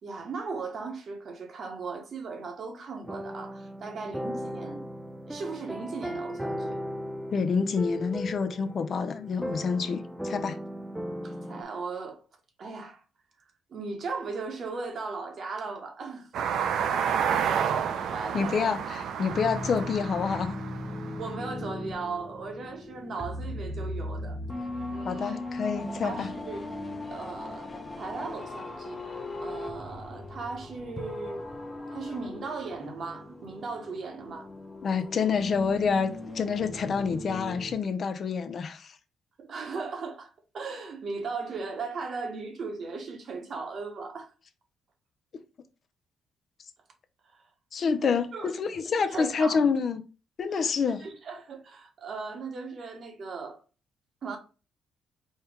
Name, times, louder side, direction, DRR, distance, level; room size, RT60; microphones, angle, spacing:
voice 1, 0.0-4.9 5.3-6.8 11.2-12.2 12.6-13.0 13.7-16.5 17.4-18.8 19.6-19.8 21.2-24.4 24.9-25.4 26.0-26.7 27.1-31.4 31.9-34.5 39.4-44.3 47.2-47.4 48.3-48.5 49.1-49.7 50.5-50.7 51.0-53.6 54.2-54.4, right 4 dB, 55° right, 1.1 m, -37 dB
sound 1, 3.0-11.6, equal, 5° right, 0.4 m, -37 dB
voice 2, 7.3-10.6 18.3-20.6 25.0-26.3 34.8-38.9 47.7-50.0 50.4-51.0, left 5 dB, 50° left, 0.5 m, -28 dB
sound 2, 16.3-21.3, right 8 dB, 75° right, 0.4 m, -30 dB
sound 3, 17.9-37.7, left 1 dB, 15° left, 0.8 m, -38 dB
4.3 x 2.3 x 3.5 m
cardioid pair, 90°, 0 cm